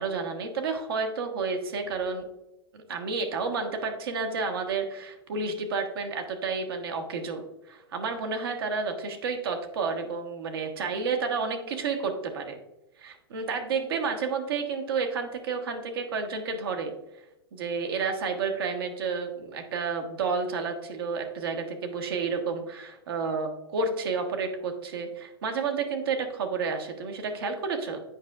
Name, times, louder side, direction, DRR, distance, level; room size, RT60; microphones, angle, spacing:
voice 1, 0.0-2.3 2.7-12.6 13.0-16.9 17.5-28.0, right 4 dB, 70° right, 4 dB, 1.2 m, -30 dB
8.4 x 5.2 x 2.4 m, 0.94 s
hypercardioid pair, 110°, 13 cm